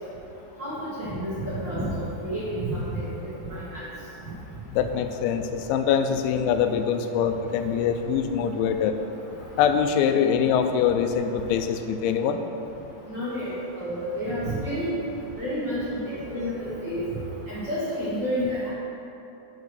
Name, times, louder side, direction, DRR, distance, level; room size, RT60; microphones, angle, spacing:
voice 1, 0.6-1.9 2.2-3.8 13.1-14.9 15.4-17.0 17.5-18.7, equal, 50° right, -12 dB, 1.3 m, -30 dB
voice 2, 4.7-8.9 9.6-12.4, left 7 dB, 85° left, 7 dB, 2.9 m, -23 dB
7.4 x 4.8 x 6.3 m, 3.0 s
omnidirectional pair, 5.2 m